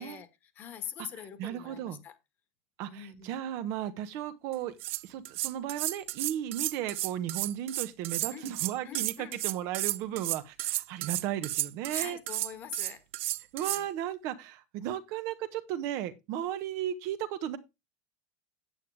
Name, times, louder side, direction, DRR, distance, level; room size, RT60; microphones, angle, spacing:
voice 1, 0.0-2.2 2.9-3.4 8.3-8.5 8.8-9.4 11.9-13.0 13.6-13.8, left 8 dB, 30° left, 1.6 m, -44 dB
voice 2, 1.4-2.0 2.8-4.7 5.0-12.2 13.5-17.6, right 11 dB, 45° right, 1.0 m, -35 dB
sound 1, 4.5-13.8, right 18 dB, 80° right, 0.4 m, -33 dB
9.0 x 8.4 x 3.3 m
supercardioid pair, 170°, 7 cm